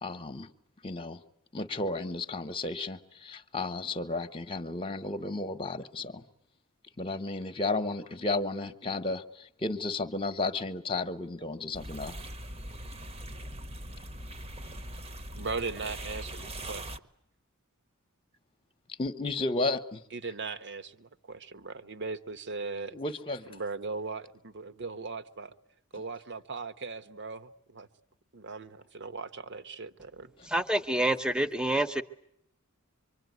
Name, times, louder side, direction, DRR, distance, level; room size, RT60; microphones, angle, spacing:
voice 1, 0.0-0.5 0.8-1.2 1.5-6.2 7.0-12.2 19.0-20.0 22.9-23.5, left 2 dB, 25° left, 1.1 m, -33 dB
sound 1, 11.7-17.0, right 1 dB, 30° right, 1.0 m, -41 dB
voice 2, 15.3-16.9 20.1-22.9 23.5-25.5 25.9-27.9 28.3-30.3, right 4 dB, 55° right, 1.1 m, -38 dB
voice 3, 30.4-32.0, right 1 dB, 5° right, 1.0 m, -27 dB
25.0 x 24.5 x 9.5 m
head